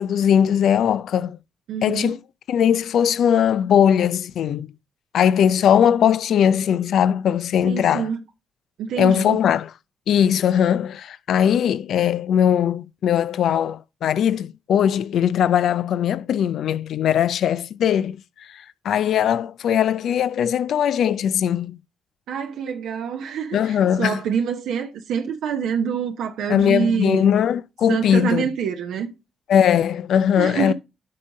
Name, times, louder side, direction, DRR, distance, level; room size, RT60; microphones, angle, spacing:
voice 1, 0.0-1.4 1.8-2.2 2.5-4.7 5.1-8.1 9.0-9.7 10.1-18.2 18.5-21.8 23.5-24.2 26.5-28.5 29.5-30.7, left 9 dB, 75° left, 0.4 m, -20 dB
voice 2, 1.7-2.2 7.6-8.2 8.8-9.4 22.3-27.3 27.9-29.1 30.4-30.7, right 7 dB, 80° right, 0.7 m, -26 dB
10.5 x 3.8 x 3.7 m
hypercardioid pair, 45°, 0 cm